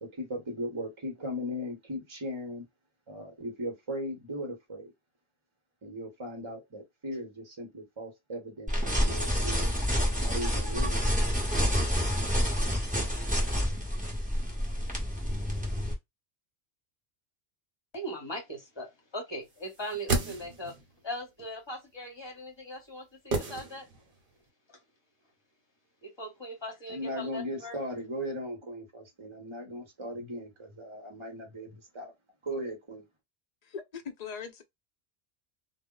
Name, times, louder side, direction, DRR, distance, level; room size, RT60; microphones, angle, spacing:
voice 1, 0.0-2.6 3.1-4.9 5.8-9.7 10.2-11.0 26.9-32.1 32.4-33.1, equal, 30° right, 0.9 m, -38 dB
sound 1, 8.7-15.9, equal, 10° right, 0.8 m, -28 dB
voice 2, 17.9-20.7 21.0-23.9 26.0-27.8, equal, 25° left, 0.9 m, -39 dB
sound 2, 19.7-20.9 23.3-24.2 24.5-24.6, right 3 dB, 55° right, 0.9 m, -32 dB
voice 3, 33.6-34.6, left 6 dB, 55° left, 0.5 m, -40 dB
2.1 x 2.1 x 3.7 m
omnidirectional pair, 1.1 m